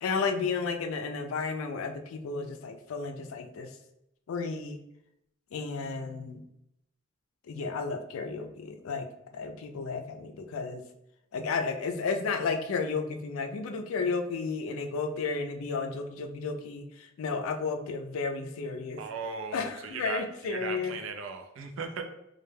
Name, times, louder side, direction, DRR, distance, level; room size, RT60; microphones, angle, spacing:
voice 1, 0.0-3.7 4.3-4.8 5.5-6.4 7.5-9.1 9.3-10.8 11.3-19.0 19.5-21.0, left 4 dB, 85° left, 6 dB, 0.4 m, -33 dB
voice 2, 19.0-22.0, right 5 dB, 70° right, 5 dB, 0.4 m, -37 dB
2.2 x 2.1 x 3.2 m, 0.80 s
head